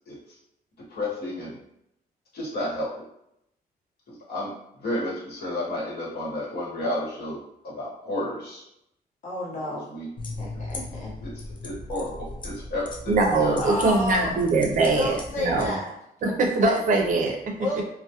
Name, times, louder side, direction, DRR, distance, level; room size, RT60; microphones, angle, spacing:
voice 1, 0.1-0.4 0.9-1.6 2.3-3.0 4.1-8.6 9.5-10.1 11.2-13.6, left 1 dB, 75° left, -6 dB, 1.1 m, -32 dB
voice 2, 9.2-9.9 10.4-11.1 13.6-14.3 14.9-15.9 16.2-16.3 16.6-16.8 17.5-17.8, left 2 dB, 50° left, -4 dB, 0.8 m, -30 dB
sound 1, 10.2-15.7, left 2 dB, 30° left, 0.3 m, -38 dB
voice 3, 13.1-15.8 16.2-17.4, right 3 dB, 55° right, 2 dB, 0.4 m, -22 dB
2.2 x 2.0 x 2.8 m, 0.79 s
wide cardioid pair, 165°, 16 cm